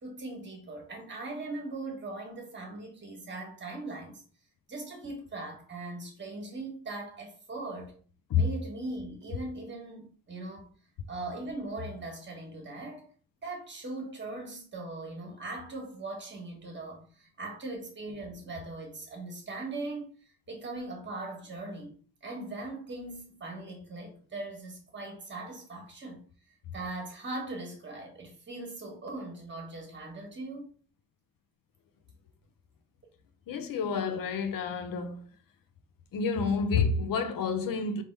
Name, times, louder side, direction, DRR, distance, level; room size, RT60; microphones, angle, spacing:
voice 1, 0.0-4.2 4.7-8.0 8.3-10.7 11.1-13.1 13.4-20.1 20.5-21.9 22.2-26.2 26.7-30.7, right 2 dB, 35° right, 1.3 m, -40 dB
voice 2, 33.5-35.3 36.1-38.0, left 5 dB, 70° left, 0.7 m, -29 dB
3.5 x 2.8 x 4.5 m
wide cardioid pair, 175°, 35 cm